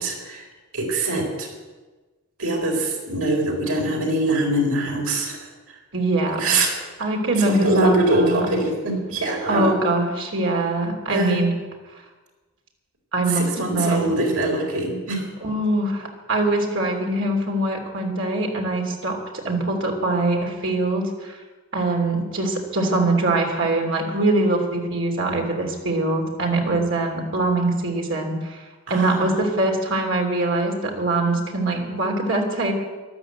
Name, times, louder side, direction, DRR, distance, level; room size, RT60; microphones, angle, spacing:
voice 1, 0.0-0.4 0.7-1.5 2.4-5.4 6.4-6.8 7.4-9.7 11.1-11.4 13.3-15.3 28.9-29.3, right 2 dB, 75° right, 0 dB, 4.3 m, -23 dB
voice 2, 5.9-6.4 7.0-8.4 9.5-11.5 13.1-14.1 15.4-21.4 21.7-28.6 28.9-32.7, right 2 dB, 60° right, 1 dB, 3.1 m, -23 dB
13.0 x 12.0 x 8.1 m, 1.3 s
head